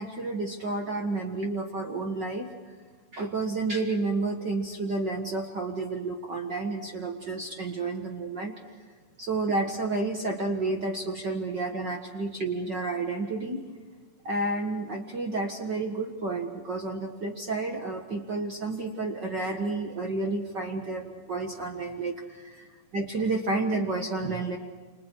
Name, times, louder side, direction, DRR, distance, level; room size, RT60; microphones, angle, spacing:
voice 1, 0.0-2.5 3.1-8.6 9.2-13.6 14.2-24.6, right 3 dB, 50° right, 2 dB, 1.3 m, -30 dB
29.5 x 27.0 x 4.7 m, 1.4 s
omnidirectional pair, 4.4 m